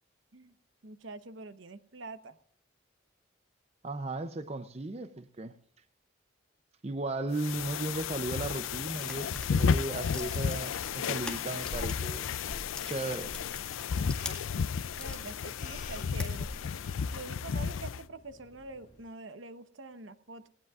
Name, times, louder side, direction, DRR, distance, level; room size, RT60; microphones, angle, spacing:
voice 1, 0.8-2.4 15.0-16.5 17.1-20.5, right 3 dB, 75° right, 0.9 m, -45 dB
voice 2, 3.8-5.6 6.8-12.3 12.8-13.4, right 2 dB, 30° right, 0.6 m, -36 dB
sound 1, 7.3-18.0, left 6 dB, 90° left, 0.4 m, -33 dB
sound 2, 9.0-12.2 12.4-15.2 15.7-16.8, left 1 dB, 5° left, 1.9 m, -43 dB
sound 3, 10.8-19.0, left 5 dB, 40° left, 2.2 m, -53 dB
18.5 x 18.0 x 2.4 m
head